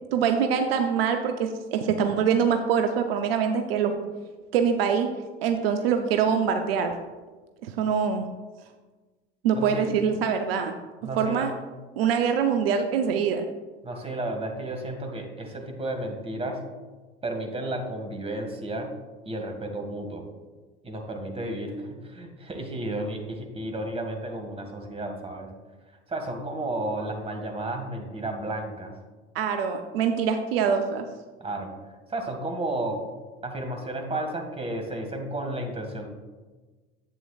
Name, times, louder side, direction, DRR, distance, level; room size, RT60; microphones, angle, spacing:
voice 1, 0.1-3.9 4.5-5.1 5.4-7.0 7.6-8.3 9.4-10.8 11.2-11.5 12.0-13.5 29.3-31.1, right 7 dB, 70° right, 6 dB, 0.7 m, -24 dB
voice 2, 9.5-9.9 11.0-11.5 13.8-16.7 17.2-18.9 19.2-20.2 20.8-25.5 26.1-28.9 31.4-31.7 32.1-33.0 33.4-36.1, right 1 dB, 20° right, 3 dB, 1.8 m, -32 dB
11.0 x 8.3 x 2.4 m, 1.3 s
hypercardioid pair, 70°, 30 cm